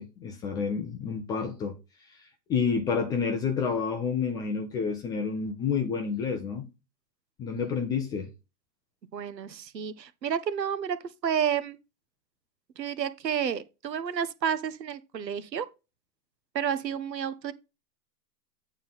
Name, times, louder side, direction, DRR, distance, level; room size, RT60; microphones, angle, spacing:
voice 1, 0.0-1.7 2.1-2.2 2.5-6.7 7.4-8.3, left 6 dB, 10° left, 0.3 m, -29 dB
voice 2, 9.1-11.0 11.2-11.8 12.8-15.7 16.5-17.5, right 8 dB, 90° right, 1.0 m, -30 dB
8.8 x 3.7 x 5.5 m
hypercardioid pair, 110°, 49 cm